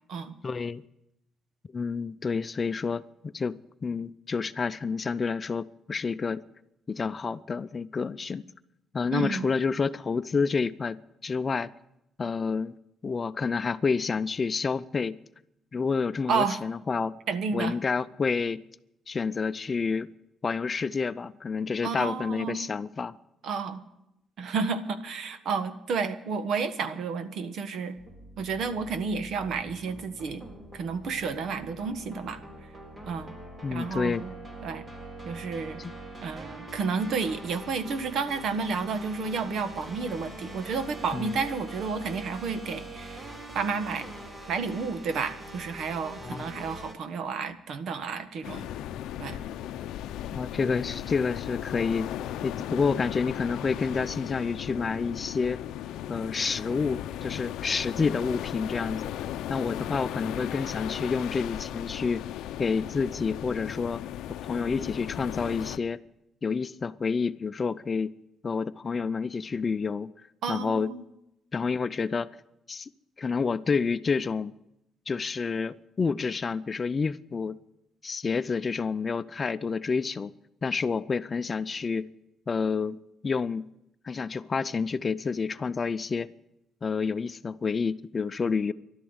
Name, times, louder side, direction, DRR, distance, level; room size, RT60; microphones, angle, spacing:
voice 1, 0.4-0.8 1.7-6.4 6.9-8.4 8.9-11.7 12.2-12.7 13.0-15.2 15.7-17.2 17.5-18.6 19.1-20.1 20.4-23.1 33.6-34.2 35.8-35.9 41.1-41.4 46.2-46.6 50.3-52.1 52.4-55.6 56.1-59.0 59.5-62.2 62.6-64.0 64.5-66.0 66.4-68.1 68.4-70.1 70.5-70.9 71.5-72.3 72.7-72.9 73.2-74.5 75.1-77.6 78.0-80.3 80.6-82.1 82.5-83.0 83.2-83.7 84.0-86.3 86.8-88.7, left 5 dB, 35° left, 14 dB, 0.6 m, -29 dB
voice 2, 9.1-9.5 16.3-16.6 17.3-17.7 21.8-22.7 23.4-23.8 24.4-28.0 28.4-30.4 30.7-32.4 33.1-33.3 33.7-34.3 34.6-34.8 35.2-35.8 36.2-43.3 43.5-44.1 44.5-48.7 49.2-49.4 70.4-71.0, right 5 dB, 70° right, 10 dB, 1.4 m, -31 dB
sound 1, 28.0-46.9, right 1 dB, 30° right, 3.9 m, -44 dB
sound 2, 48.4-65.8, left 11 dB, 90° left, 0.6 m, -36 dB
13.5 x 12.0 x 8.0 m, 0.86 s
cardioid pair, 90°, 0 cm